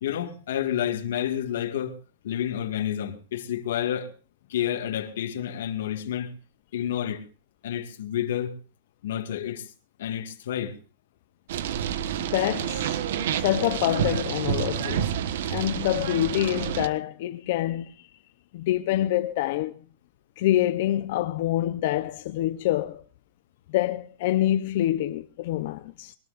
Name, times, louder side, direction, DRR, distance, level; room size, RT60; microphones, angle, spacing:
voice 1, 0.0-1.9 2.2-4.1 4.5-6.3 6.7-7.2 7.6-8.5 9.0-9.7 10.0-10.8, left 10 dB, 80° left, 2.0 m, -29 dB
sound 1, 11.5-16.9, right 9 dB, 70° right, 1.3 m, -29 dB
voice 2, 12.2-13.0 13.4-15.1 15.5-18.1 18.5-19.7 20.4-23.0 23.7-26.1, left 14 dB, 55° left, 0.8 m, -26 dB
22.5 x 20.0 x 2.6 m
supercardioid pair, 165°, 0 cm